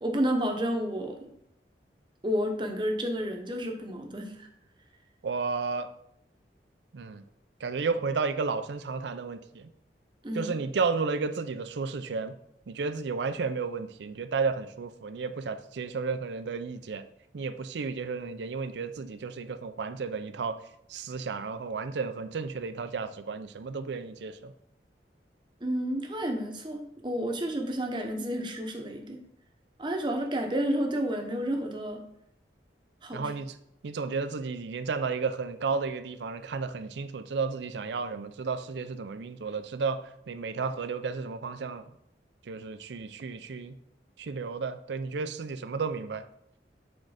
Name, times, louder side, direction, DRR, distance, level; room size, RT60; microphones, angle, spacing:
voice 1, 0.0-1.2 2.2-4.5 10.2-10.5 25.6-29.2 29.8-32.0 33.0-33.3, equal, 25° right, 3 dB, 0.8 m, -30 dB
voice 2, 5.2-5.9 6.9-7.2 7.6-9.7 10.3-12.4 12.7-17.0 17.3-20.6 20.9-24.5 33.1-33.6 33.8-41.9 42.5-43.7 44.2-46.2, right 4 dB, 75° right, 11 dB, 0.4 m, -32 dB
6.3 x 3.8 x 4.8 m, 0.78 s
head